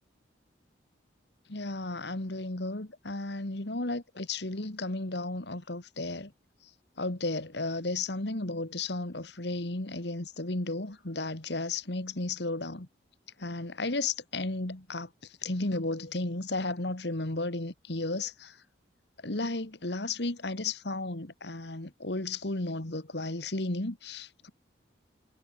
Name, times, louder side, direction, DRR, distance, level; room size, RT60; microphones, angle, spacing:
voice 1, 1.5-6.3 7.0-12.9 13.4-15.1 15.4-18.6 19.2-24.5, left 2 dB, 65° left, 2.0 m, -34 dB
head